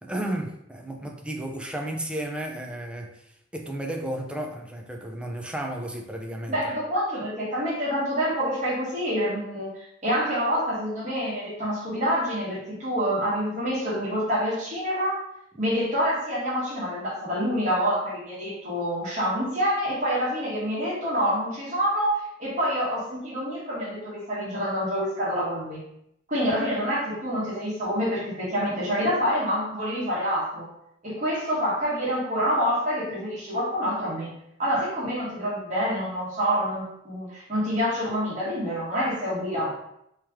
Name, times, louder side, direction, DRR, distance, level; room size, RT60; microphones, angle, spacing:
voice 1, 0.0-6.6, right 1 dB, 5° right, 2 dB, 0.4 m, -33 dB
voice 2, 6.5-15.2 15.6-25.8 26.3-30.7 31.0-34.3 34.6-39.7, equal, 40° right, -7 dB, 1.4 m, -27 dB
3.1 x 3.0 x 3.5 m, 0.76 s
head